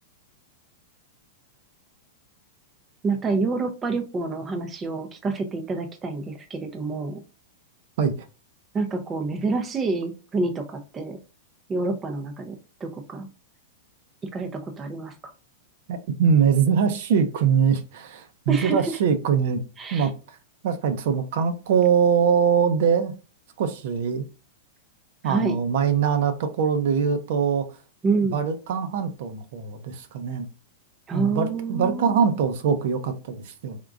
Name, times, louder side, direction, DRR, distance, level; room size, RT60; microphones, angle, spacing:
voice 1, 3.0-7.2 8.7-11.2 11.7-13.3 14.2-15.3 18.5-19.0 19.8-20.1 25.2-25.6 28.0-28.4 31.1-32.3, right 3 dB, 15° right, 0.5 m, -28 dB
voice 2, 15.9-19.6 19.9-20.1 20.6-23.1 23.6-24.2 25.2-27.7 28.3-30.5 31.1-33.8, right 7 dB, 60° right, 0.7 m, -22 dB
3.7 x 3.6 x 2.4 m
supercardioid pair, 150°, 0 cm